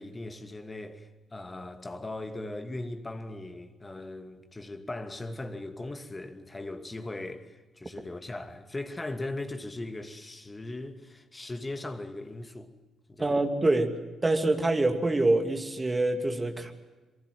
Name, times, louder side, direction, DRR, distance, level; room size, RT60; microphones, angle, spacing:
voice 1, 0.0-12.7 13.1-13.4, left 2 dB, 20° left, 2.5 m, -39 dB
voice 2, 13.2-16.7, right 2 dB, 25° right, 2.8 m, -26 dB
27.0 x 23.5 x 8.0 m
figure-of-eight pair, 40°, 0 cm